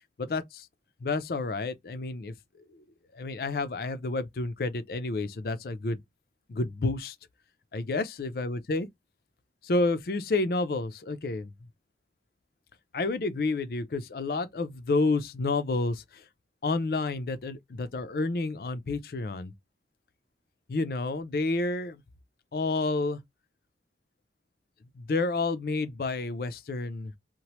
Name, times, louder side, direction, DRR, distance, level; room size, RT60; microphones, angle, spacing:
voice 1, 0.2-0.7 1.0-2.3 2.7-2.8 3.1-6.0 6.5-7.2 7.7-8.9 9.6-11.5 12.9-16.2 16.6-19.5 20.7-22.0 22.5-23.2 25.0-27.1, left 3 dB, 55° left, 0.4 m, -30 dB
2.9 x 2.1 x 3.0 m
head